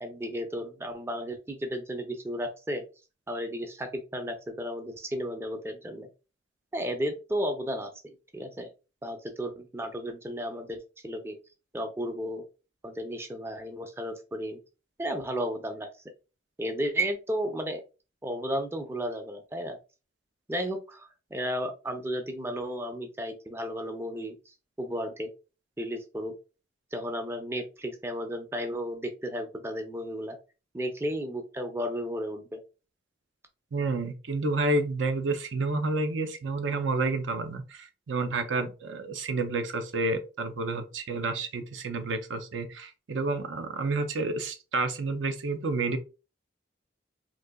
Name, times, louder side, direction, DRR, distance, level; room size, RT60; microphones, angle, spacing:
voice 1, 0.0-2.8 3.3-6.1 6.7-8.7 9.0-11.4 11.7-12.4 12.8-14.6 15.0-15.9 16.6-17.8 18.2-19.8 20.5-25.3 25.8-26.3 26.9-30.4 30.7-32.6, equal, 15° right, 0.4 m, -33 dB
voice 2, 33.7-46.0, right 3 dB, 85° right, 0.6 m, -30 dB
3.8 x 2.7 x 2.2 m
head